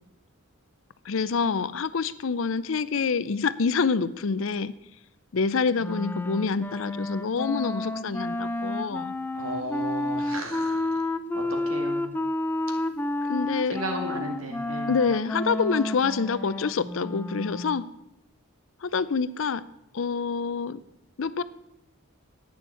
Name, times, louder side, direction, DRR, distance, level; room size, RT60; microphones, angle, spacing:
voice 1, 1.1-4.7 5.3-9.1 13.2-13.8 14.9-17.9 18.8-19.6 19.9-20.8 21.2-21.4, left 5 dB, 65° left, 16 dB, 0.5 m, -26 dB
Wind instrument woodwind instrument, 5.8-17.8, left 1 dB, 10° left, 0.5 m, -30 dB
voice 2, 9.3-11.0 11.3-12.1 13.7-14.9, right 1 dB, 70° right, 3 dB, 2.2 m, -34 dB
8.7 x 7.0 x 8.4 m, 0.85 s
head